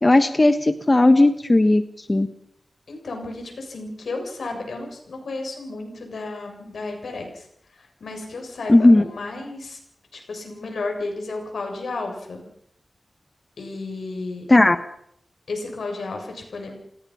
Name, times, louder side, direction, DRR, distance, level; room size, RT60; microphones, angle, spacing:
voice 1, 0.0-1.8 2.1-2.3 8.7-9.0 14.5-14.8, left 2 dB, 25° left, 9 dB, 1.3 m, -15 dB
voice 2, 2.9-9.8 10.1-12.4 13.6-14.5 15.5-16.7, left 3 dB, 85° left, 3 dB, 7.0 m, -33 dB
29.0 x 19.0 x 5.7 m, 0.71 s
wide cardioid pair, 80°, 0 cm